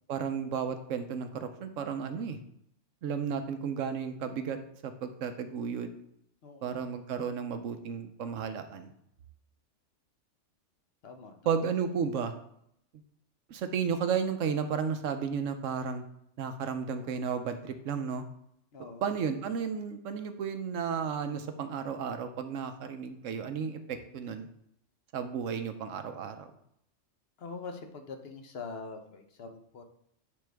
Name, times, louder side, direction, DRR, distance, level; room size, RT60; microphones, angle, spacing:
voice 1, 0.1-2.4 3.0-4.6 4.8-6.0 6.6-8.9 11.5-12.3 13.5-16.0 16.4-18.2 19.0-24.5 25.1-26.5, right 6 dB, 85° right, 9 dB, 1.1 m, -33 dB
voice 2, 6.4-6.8 11.0-11.5 18.7-19.1 27.4-29.8, left 4 dB, 55° left, 5 dB, 1.1 m, -44 dB
9.7 x 3.9 x 3.5 m, 0.74 s
omnidirectional pair, 1.3 m